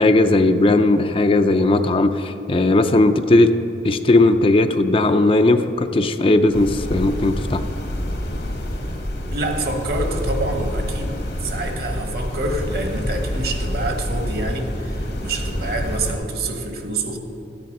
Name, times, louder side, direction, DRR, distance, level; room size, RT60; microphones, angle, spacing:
voice 1, 0.0-3.5 3.8-7.6, left 2 dB, 30° left, 8 dB, 0.4 m, -17 dB
sound 1, 6.5-16.1, equal, 85° left, 2.0 m, -27 dB
voice 2, 9.3-11.1 11.4-17.2, right 2 dB, 60° right, 5 dB, 1.3 m, -27 dB
13.0 x 9.2 x 5.4 m, 2.8 s
head